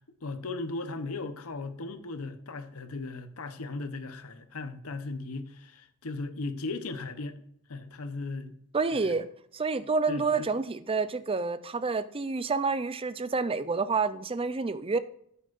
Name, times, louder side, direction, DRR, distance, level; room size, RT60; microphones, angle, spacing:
voice 1, 0.0-7.4 7.7-8.6 8.9-9.2 10.1-10.5, left 3 dB, 85° left, 0.9 m, -37 dB
voice 2, 8.7-9.3 9.5-15.0, right 4 dB, 25° right, 0.5 m, -28 dB
9.3 x 8.3 x 2.5 m
head